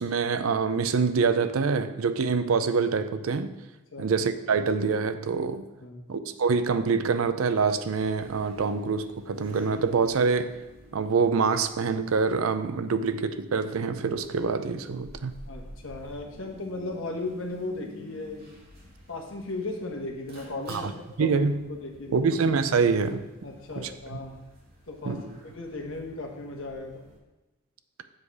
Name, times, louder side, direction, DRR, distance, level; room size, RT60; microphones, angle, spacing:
voice 1, 0.0-3.5 4.0-5.6 6.1-10.6 10.9-15.3 20.7-20.9 21.2-21.7 22.1-23.3 23.8-24.2 25.0-25.2, right 5 dB, 90° right, 11 dB, 0.5 m, -25 dB
sound 1, 7.8-27.2, equal, 50° right, 2.1 m, -51 dB
voice 2, 15.5-18.5 19.1-21.4 21.7-22.2 23.4-24.4 24.9-25.2 25.5-27.0, left 2 dB, 70° left, 2 dB, 1.3 m, -36 dB
7.5 x 4.9 x 5.9 m, 1.1 s
head